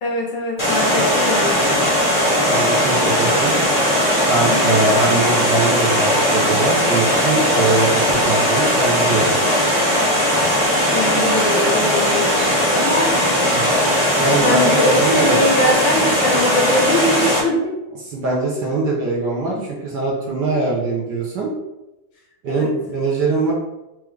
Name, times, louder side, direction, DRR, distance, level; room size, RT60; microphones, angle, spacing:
voice 1, 0.0-1.7 4.5-4.8 10.9-13.1 14.2-17.7 19.5-19.6 22.5-22.7, left 1 dB, 70° left, -1 dB, 1.3 m, -22 dB
Water, 0.6-17.4, equal, 25° left, 0.7 m, -18 dB
voice 2, 2.5-3.5 4.3-9.3 13.5-13.8 14.2-15.4 18.0-21.5 22.4-23.5, right 3 dB, 65° right, -4 dB, 1.2 m, -22 dB
4.7 x 2.5 x 3.1 m, 0.98 s
omnidirectional pair, 2.3 m